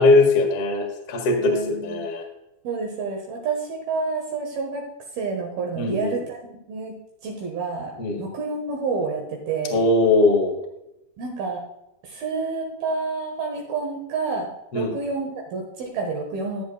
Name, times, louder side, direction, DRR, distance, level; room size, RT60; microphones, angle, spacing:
voice 1, 0.0-2.2 5.7-6.2 8.0-8.2 9.7-10.6 14.7-14.9, left 2 dB, 60° left, 2 dB, 1.4 m, -20 dB
voice 2, 1.4-2.0 2.6-4.8 5.1-6.4 6.7-7.0 7.2-9.8 11.2-11.7 12.0-16.6, right 4 dB, 65° right, 1 dB, 2.8 m, -29 dB
14.5 x 8.3 x 2.3 m, 0.87 s
omnidirectional pair, 5.3 m